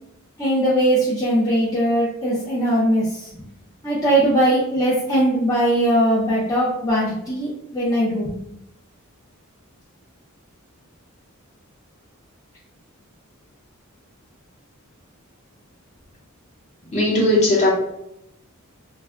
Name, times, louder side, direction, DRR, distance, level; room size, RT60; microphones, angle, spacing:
voice 1, 0.4-3.3 3.8-8.4, right 1 dB, 15° left, -8 dB, 0.5 m, -20 dB
voice 2, 16.9-17.7, left 1 dB, 30° left, -5 dB, 0.9 m, -17 dB
2.3 x 2.1 x 3.5 m, 0.80 s
head